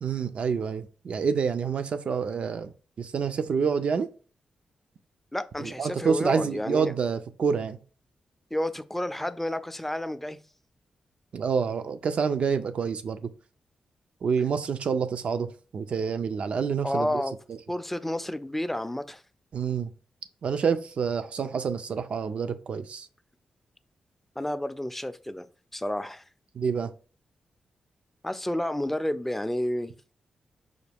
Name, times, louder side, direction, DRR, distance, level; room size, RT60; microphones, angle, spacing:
voice 1, 0.0-4.1 5.6-7.8 11.3-13.3 14.2-17.2 17.5-17.6 19.5-19.9 20.4-23.1 26.5-26.9, right 6 dB, 65° right, 0.4 m, -28 dB
voice 2, 5.3-6.9 8.5-10.4 16.8-17.3 17.7-19.2 24.4-25.5 25.7-26.2 28.2-29.9, left 1 dB, 10° left, 0.4 m, -30 dB
5.0 x 2.2 x 3.4 m
cardioid pair, 55°, 2 cm